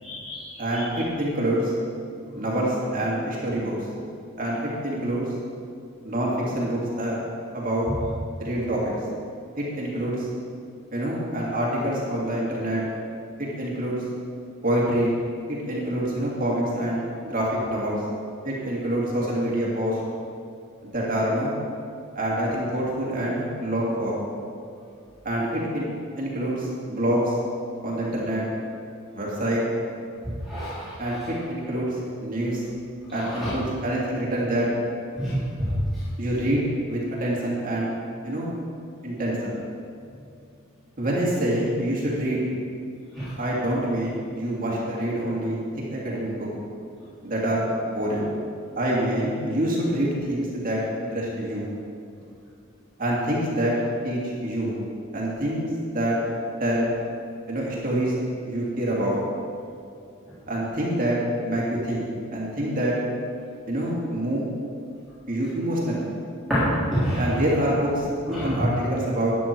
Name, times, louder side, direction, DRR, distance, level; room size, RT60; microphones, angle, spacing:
voice 1, 0.0-0.4 0.7-0.8 30.5-30.9 33.4-33.5 35.1-35.4 43.1-43.3 66.5-67.2 68.3-68.5, equal, ahead, -15 dB, 3.4 m, -26 dB
voice 2, 0.6-1.7 2.3-3.7 4.4-5.3 6.0-7.2 7.5-7.9 8.4-8.9 9.6-10.3 10.9-12.8 13.6-14.0 14.6-15.2 15.5-18.0 18.4-20.0 20.8-21.5 22.1-24.2 25.2-25.8 26.2-27.4 27.8-28.4 29.1-29.6 31.0-32.6 33.1-34.7 36.2-37.9 38.2-38.5 39.0-39.5 41.0-42.4 43.4-45.6 45.9-46.5 47.2-48.3 48.8-51.7 53.0-53.7 54.0-54.7 55.1-55.7 55.9-56.2 56.6-56.9 57.5-58.1 58.4-59.2 60.5-61.2 61.4-62.0 62.3-62.9 63.7-64.5 65.3-66.1 67.2-69.3, right 1 dB, 40° right, -5 dB, 2.5 m, -26 dB
12.5 x 9.8 x 4.6 m, 2.4 s
head